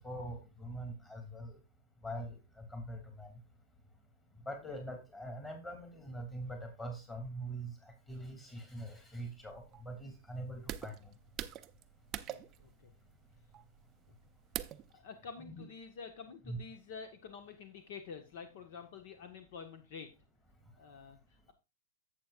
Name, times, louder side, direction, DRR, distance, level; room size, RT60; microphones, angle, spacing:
voice 1, 0.0-1.5 2.0-3.3 4.5-7.7 8.1-10.9 15.5-15.6 16.5-16.6, right 1 dB, 10° left, 4 dB, 2.9 m, -43 dB
sound 1, 9.0-14.9, right 12 dB, 25° right, 0.5 m, -45 dB
voice 2, 12.3-12.9 14.6-20.1 20.8-21.2, left 5 dB, 55° left, 7 dB, 1.5 m, -49 dB
11.5 x 7.8 x 2.5 m, 0.26 s
supercardioid pair, 160°, 0 cm